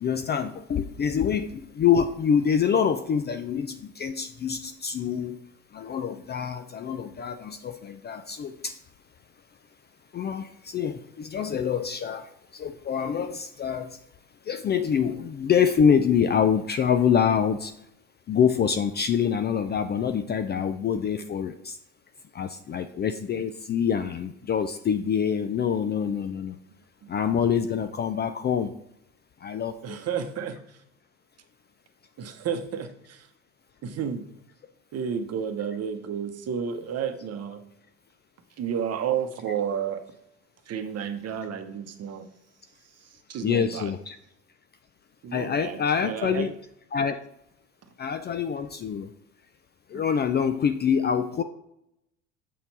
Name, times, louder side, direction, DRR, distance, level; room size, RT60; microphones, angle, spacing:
voice 1, 0.0-5.4 5.7-8.7 10.1-14.0 14.5-17.7 18.3-21.8 22.3-26.6 27.1-28.7 29.4-30.0 43.4-44.2 45.3-46.5 46.9-47.2 48.0-49.1 49.9-51.4, left 7 dB, 25° left, 9 dB, 0.4 m, -26 dB
voice 2, 29.8-30.6 32.2-33.2 33.8-34.2 34.9-37.6 38.6-40.0 40.7-42.2 43.3-43.9 45.2-46.5, right 7 dB, 40° right, 7 dB, 1.0 m, -31 dB
7.4 x 4.3 x 4.0 m, 0.78 s
hypercardioid pair, 75°, 38 cm